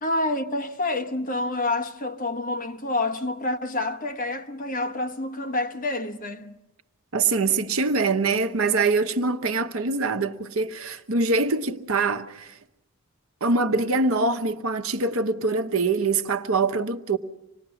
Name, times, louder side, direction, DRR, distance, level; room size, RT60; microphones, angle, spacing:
voice 1, 0.0-6.6, left 2 dB, 40° left, 1.2 m, -28 dB
voice 2, 7.1-12.5 13.4-17.2, right 3 dB, 75° right, 1.0 m, -24 dB
26.0 x 19.0 x 7.0 m
head